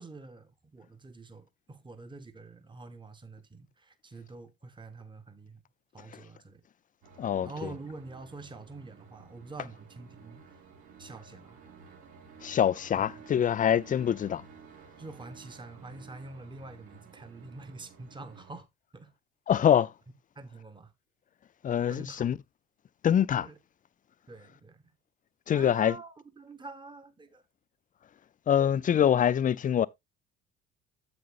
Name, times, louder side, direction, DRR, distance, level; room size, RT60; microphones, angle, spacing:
voice 1, 0.0-5.6 5.9-6.6 7.4-10.6 11.0-11.6 12.9-13.1 13.4-13.5 15.0-18.7 18.9-19.1 20.3-20.9 21.9-22.3 23.4-23.6 24.3-24.8 25.5-27.4, right 3 dB, 15° right, 1.2 m, -46 dB
sound 1, 7.0-18.6, right 5 dB, 60° right, 3.0 m, -53 dB
voice 2, 7.2-7.7 12.4-14.4 19.5-19.9 21.6-22.4 23.0-23.5 25.5-26.0 28.5-29.9, left 9 dB, 25° left, 0.4 m, -25 dB
9.5 x 7.5 x 2.4 m
figure-of-eight pair, 55°, 35 cm